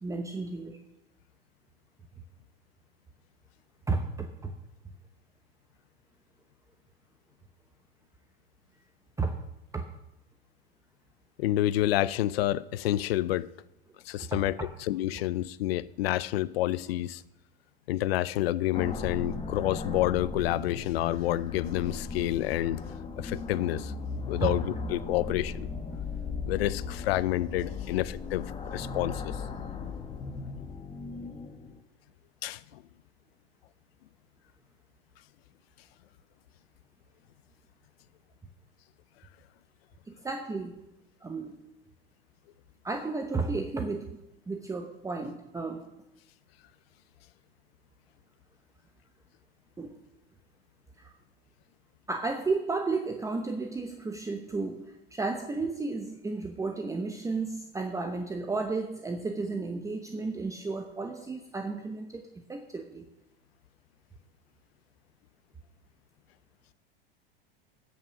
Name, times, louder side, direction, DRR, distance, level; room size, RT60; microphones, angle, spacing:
voice 1, 0.0-0.8 3.9-4.5 9.2-9.4 9.7-9.9 14.3-14.4 24.4-24.5 40.1-40.8 41.2-41.7 42.8-44.2 44.5-45.9 49.8-50.0 51.0-51.1 52.1-63.1, right 3 dB, 10° right, 0.9 m, -33 dB
voice 2, 11.4-13.5 14.1-17.2 17.9-22.8 23.2-23.9 24.3-25.7 26.5-29.4 32.4-32.8, left 14 dB, 80° left, 0.6 m, -29 dB
sound 1, 18.7-31.8, left 4 dB, 20° left, 1.1 m, -37 dB
13.0 x 5.9 x 6.4 m
hypercardioid pair, 115°, 30 cm